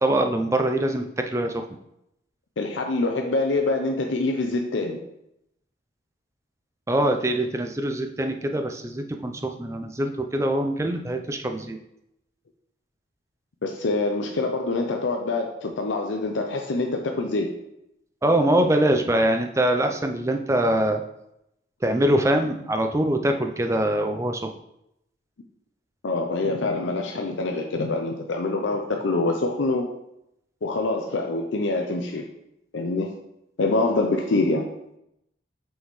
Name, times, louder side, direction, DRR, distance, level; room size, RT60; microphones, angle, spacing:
voice 1, 0.0-1.6 6.9-11.8 18.2-21.0 21.8-24.4, right 1 dB, 15° right, 5 dB, 0.4 m, -23 dB
voice 2, 2.6-5.0 13.6-17.5 26.0-29.9 30.6-32.2 32.7-33.1 33.6-34.7, left 2 dB, 90° left, 3 dB, 0.6 m, -25 dB
6.2 x 5.3 x 3.2 m, 0.81 s
head